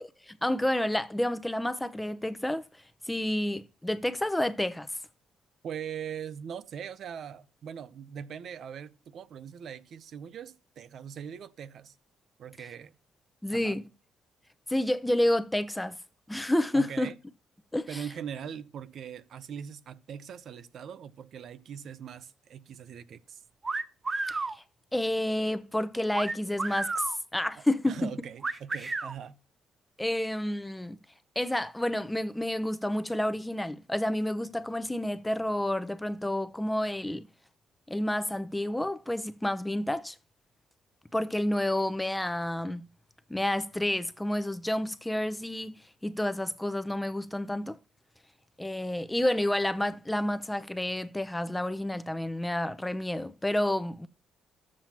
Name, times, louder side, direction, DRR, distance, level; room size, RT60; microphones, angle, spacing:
voice 1, 0.3-2.6 3.1-4.9 13.4-13.8 14.7-16.0 16.3-17.1 17.7-18.0 24.3-24.4 24.9-27.1 27.3-28.1 30.0-31.0 31.4-37.2 37.9-40.2 41.1-42.8 43.3-45.8 46.0-47.8 48.6-54.1, left 1 dB, 10° left, 0.7 m, -29 dB
voice 2, 5.6-11.9 12.4-12.9 13.5-13.8 16.7-17.2 17.9-23.4 27.6-29.4, right 8 dB, 65° right, 0.7 m, -41 dB
sound 1, 23.6-24.6 26.1-27.2 28.4-29.1, right 3 dB, 30° right, 0.8 m, -32 dB
13.0 x 7.5 x 2.9 m
cardioid pair, 90°, 0 cm